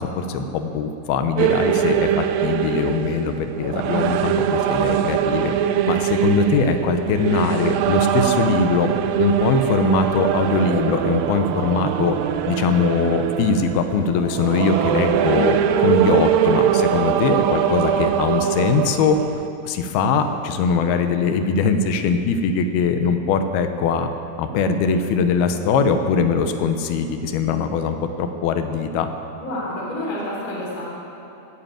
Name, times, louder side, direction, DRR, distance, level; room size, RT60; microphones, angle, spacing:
voice 1, 0.0-5.5 5.9-8.9 9.2-12.2 12.5-19.2 19.6-24.1 24.4-29.1, left 5 dB, 90° left, 7 dB, 2.8 m, -21 dB
sound 1, 1.4-19.5, right 9 dB, 80° right, 2.1 m, -22 dB
voice 2, 29.4-30.9, left 1 dB, 25° left, -5 dB, 3.3 m, -29 dB
17.0 x 9.7 x 7.6 m, 2.9 s
omnidirectional pair, 4.4 m